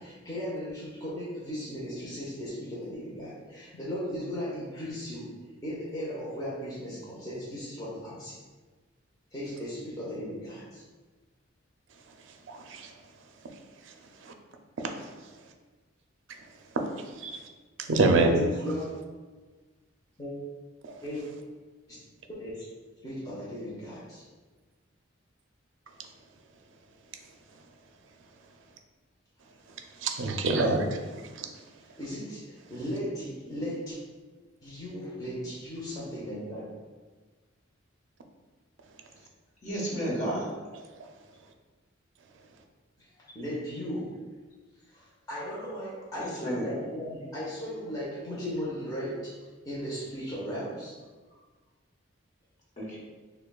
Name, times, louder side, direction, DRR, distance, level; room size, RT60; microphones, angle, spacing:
voice 1, 0.0-5.3 5.6-8.4 9.3-10.8 18.2-19.0 20.2-20.3 21.0-21.2 21.9-22.0 22.3-22.7 23.0-24.3 31.8-34.0 34.6-36.7 43.3-44.1 44.9-51.0, equal, 20° left, -8 dB, 0.7 m, -36 dB
voice 2, 12.5-12.9 14.8-14.9 17.2-17.4 17.9-18.4 30.0-31.0 31.4-31.5, right 3 dB, 70° right, 4 dB, 0.4 m, -25 dB
voice 3, 39.6-40.5 46.2-46.8 52.8-53.0, right 1 dB, 35° left, -5 dB, 1.2 m, -32 dB
6.6 x 2.2 x 2.3 m, 1.3 s
head